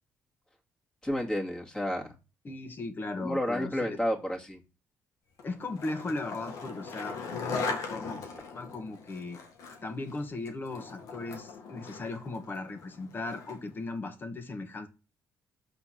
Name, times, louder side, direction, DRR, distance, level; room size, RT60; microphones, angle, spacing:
voice 1, 1.0-2.1 3.2-4.6, equal, 15° left, 2.2 m, -31 dB
voice 2, 2.4-4.0 5.4-8.2 8.5-9.4 9.8-14.9, left 3 dB, 35° left, 1.8 m, -37 dB
Skateboard, 5.4-13.7, left 4 dB, 80° left, 1.7 m, -40 dB
6.4 x 4.3 x 5.8 m
cardioid pair, 90°, 6 cm